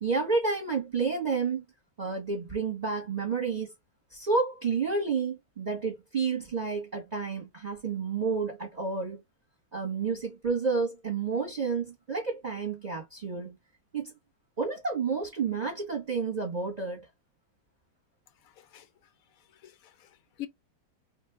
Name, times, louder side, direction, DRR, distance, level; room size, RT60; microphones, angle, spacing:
voice 1, 0.0-1.6 2.0-3.7 4.1-9.2 9.7-13.6 13.9-14.1 14.6-17.1, right 4 dB, 25° right, 1.1 m, -30 dB
voice 2, 18.4-18.9 19.6-20.5, left 14 dB, 70° left, 0.8 m, -44 dB
2.9 x 2.6 x 3.3 m
omnidirectional pair, 2.0 m